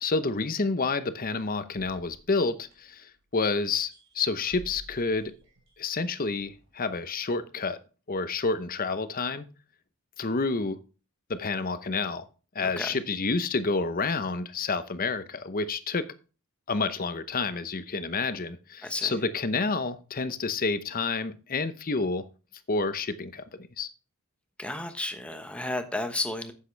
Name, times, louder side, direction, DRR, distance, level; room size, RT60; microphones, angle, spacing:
voice 1, 0.0-5.3 5.8-7.8 8.1-9.5 10.2-10.8 11.3-12.2 12.5-16.1 16.7-22.2 22.7-23.4 23.8-23.9, left 4 dB, 40° left, 0.8 m, -29 dB
sound 1, 1.7-3.3 3.7-6.8, equal, 55° right, 3.7 m, -52 dB
voice 2, 12.6-13.0 18.8-19.2 24.6-26.5, left 1 dB, 5° left, 1.1 m, -33 dB
9.9 x 8.5 x 3.3 m
head